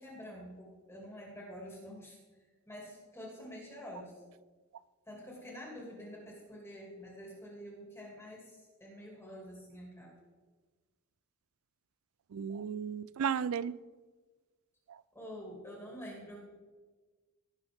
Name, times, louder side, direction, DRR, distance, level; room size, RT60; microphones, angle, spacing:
voice 1, 0.0-2.2 2.7-4.1 5.1-8.5 8.8-10.1 15.1-16.4, equal, 10° left, -3 dB, 2.5 m, -47 dB
voice 2, 12.3-13.8, right 7 dB, 70° right, 19 dB, 0.4 m, -34 dB
17.5 x 6.3 x 3.6 m, 1.4 s
head